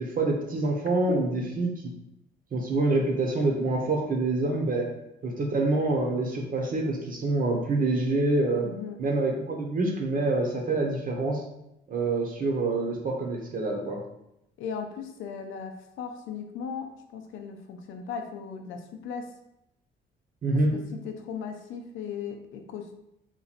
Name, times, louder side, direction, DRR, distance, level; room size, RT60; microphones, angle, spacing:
voice 1, 0.0-1.7 2.5-4.9 5.2-8.7 9.0-11.4 11.9-14.0 20.4-20.7, right 2 dB, 45° right, 0 dB, 0.9 m, -26 dB
voice 2, 8.6-9.1 14.6-19.3 20.7-23.0, left 6 dB, 85° left, 5 dB, 0.5 m, -37 dB
3.0 x 2.6 x 4.1 m, 0.85 s
cardioid pair, 90°, 20 cm